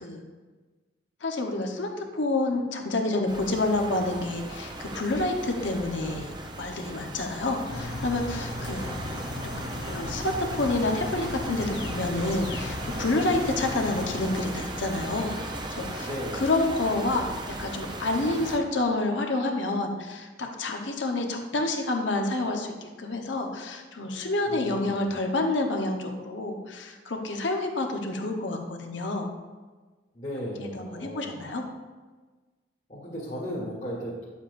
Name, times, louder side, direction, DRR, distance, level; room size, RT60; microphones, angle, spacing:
voice 1, 1.2-9.0 9.4-9.5 9.8-15.3 15.7-16.1 16.3-17.3 17.6-29.3 30.6-31.6, left 2 dB, 80° left, 3 dB, 1.0 m, -28 dB
sound 1, 3.3-18.6, right 1 dB, 25° right, 0.6 m, -37 dB
sound 2, 7.7-14.4, left 2 dB, 60° left, 0.6 m, -37 dB
voice 2, 16.0-16.5 24.5-25.0 30.1-31.3 32.9-34.3, equal, 40° left, -7 dB, 1.5 m, -36 dB
8.9 x 7.2 x 2.6 m, 1.3 s
head